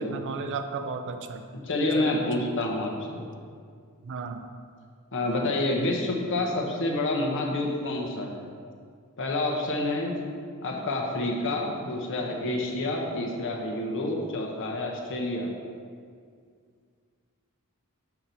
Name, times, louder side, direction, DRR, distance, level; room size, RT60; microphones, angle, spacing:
voice 1, 0.0-1.4 2.0-2.7 4.0-4.4, right 4 dB, 55° right, 7 dB, 0.4 m, -35 dB
voice 2, 1.6-3.2 5.1-8.5 9.2-10.1 10.6-15.5, left 2 dB, 60° left, 0 dB, 1.0 m, -28 dB
6.0 x 5.7 x 4.0 m, 2.1 s
head